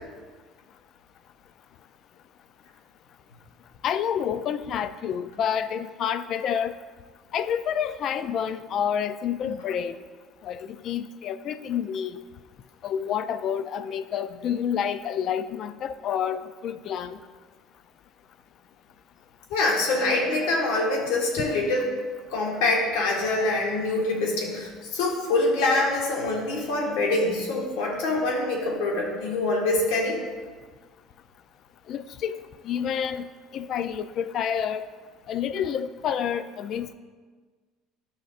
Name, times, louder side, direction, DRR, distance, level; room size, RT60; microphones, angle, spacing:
voice 1, 3.8-6.7 7.3-10.0 10.4-12.2 12.8-17.2 31.9-32.4 32.6-33.3 33.5-34.9 35.3-36.9, left 8 dB, 50° left, 13 dB, 0.3 m, -28 dB
voice 2, 19.5-21.9 22.3-30.2, left 2 dB, 85° left, -1 dB, 1.5 m, -25 dB
10.5 x 5.6 x 2.5 m, 1.5 s
cardioid pair, 115°, 0 cm